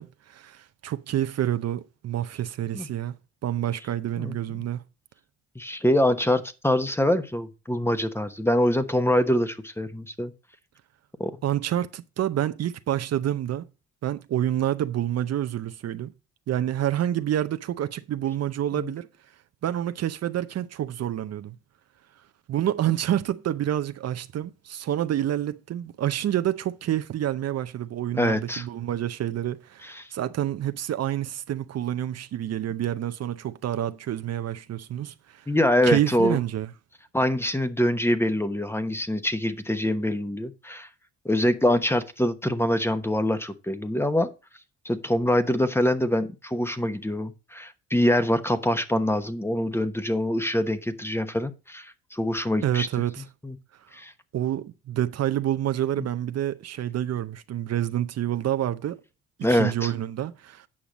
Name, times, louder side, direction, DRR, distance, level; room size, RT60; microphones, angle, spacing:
voice 1, 0.0-3.1 3.4-4.8 11.4-13.7 14.0-16.1 16.5-19.1 19.6-21.6 22.5-35.5 35.8-36.7 52.6-53.3 54.3-59.0 59.4-60.7, right 11 dB, 55° right, 0.7 m, -28 dB
voice 2, 5.5-10.3 11.2-11.3 18.8-18.9 28.1-28.6 29.8-30.1 35.5-36.4 37.1-40.9 41.2-44.3 44.8-52.9 53.4-53.6 53.9-54.1 56.0-56.1 59.4-59.9, left 1 dB, 10° left, 0.9 m, -24 dB
8.7 x 5.8 x 5.1 m
cardioid pair, 90°, 30 cm